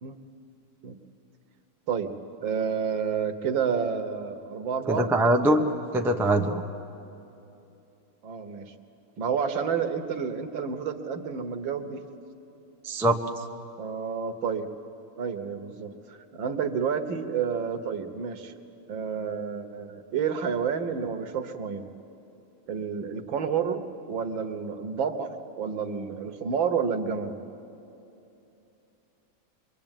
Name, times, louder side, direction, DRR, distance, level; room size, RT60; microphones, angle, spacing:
voice 1, 2.4-5.1 8.2-8.7 9.2-12.0 13.8-14.7 15.2-18.5 18.9-21.8 22.7-27.4, right 6 dB, 65° right, 8 dB, 1.9 m, -30 dB
voice 2, 4.9-6.6 12.8-13.2, right 1 dB, 5° right, 3 dB, 0.3 m, -23 dB
24.5 x 23.0 x 9.0 m, 2.9 s
omnidirectional pair, 2.3 m